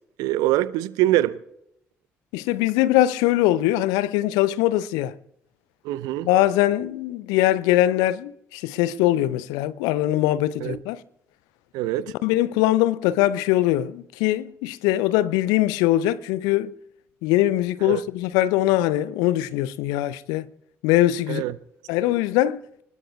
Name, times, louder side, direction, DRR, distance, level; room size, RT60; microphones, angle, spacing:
voice 1, 0.2-1.4 5.8-6.3 10.6-10.8 11.7-12.1 17.8-18.0 21.3-21.5, right 15 dB, 70° right, 0.7 m, -23 dB
voice 2, 2.3-5.2 6.2-11.0 12.2-16.7 17.2-20.5 20.8-21.4 21.9-22.6, left 14 dB, 70° left, 0.6 m, -22 dB
30.0 x 20.0 x 2.4 m
figure-of-eight pair, 40°, 7 cm